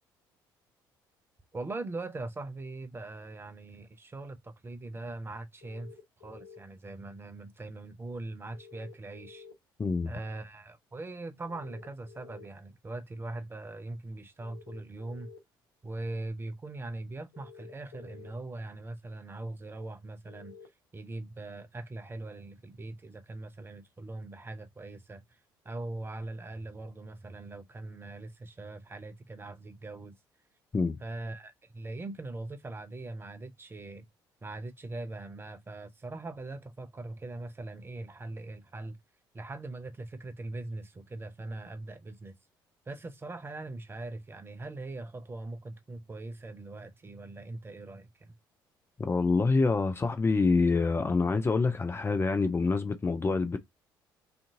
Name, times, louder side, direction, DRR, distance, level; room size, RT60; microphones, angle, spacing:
voice 1, 1.5-9.5 10.0-15.3 15.8-20.5 20.9-25.4 25.6-30.2 31.0-34.1 34.4-39.0 39.3-42.4 42.9-48.4, right 2 dB, 20° right, 0.6 m, -41 dB
sound 1, 5.6-6.6 8.5-9.5 11.5-12.5 14.4-15.4 17.3-18.3 20.3-20.7, left 6 dB, 80° left, 0.7 m, -51 dB
voice 2, 9.8-10.1 30.7-31.0 49.0-53.6, left 4 dB, 20° left, 0.5 m, -26 dB
2.5 x 2.5 x 2.6 m
figure-of-eight pair, 50°, 11 cm